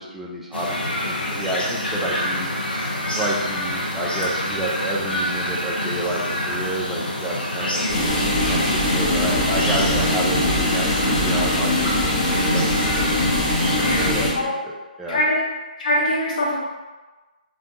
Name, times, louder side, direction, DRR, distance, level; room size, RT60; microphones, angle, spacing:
voice 1, 0.0-2.5 3.1-7.9 8.4-13.0 13.7-15.2, right 1 dB, 5° right, -5 dB, 0.3 m, -30 dB
sound 1, 0.5-14.1, left 1 dB, 90° left, 0.6 m, -27 dB
sound 2, 7.9-14.3, left 1 dB, 25° left, 0.8 m, -21 dB
voice 2, 13.8-14.6 15.1-15.4 15.8-16.6, left 1 dB, 55° left, -5 dB, 0.8 m, -23 dB
2.4 x 2.2 x 2.6 m, 1.2 s
figure-of-eight pair, 145°, 5 cm